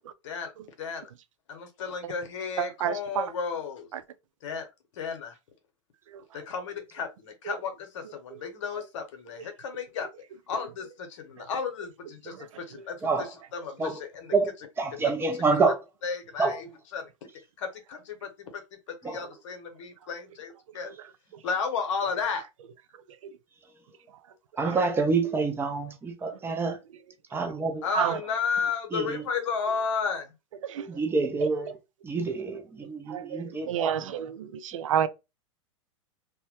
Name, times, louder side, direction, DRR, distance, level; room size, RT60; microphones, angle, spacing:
voice 1, 0.8-1.1 1.5-3.9 4.4-4.7 5.0-5.3 6.3-10.1 10.5-14.3 14.9-15.1 15.5-15.6 16.0-17.1 17.6-18.6 19.0-20.9 21.4-22.5 27.8-30.3, left 6 dB, 70° left, 0.8 m, -33 dB
voice 2, 2.6-3.3 3.9-4.0 6.1-6.2 7.5-7.6 12.3-12.5 12.7-12.8 27.9-28.2 30.6-30.9 31.4-31.5 33.1-35.1, right 9 dB, 80° right, 0.4 m, -30 dB
voice 3, 14.8-15.8 16.4-16.6 19.0-19.2 24.6-26.8 27.3-27.8 28.9-29.2 30.9-31.8 32.0-33.9, right 4 dB, 15° right, 0.5 m, -27 dB
2.1 x 2.1 x 2.8 m
hypercardioid pair, 110°, 16 cm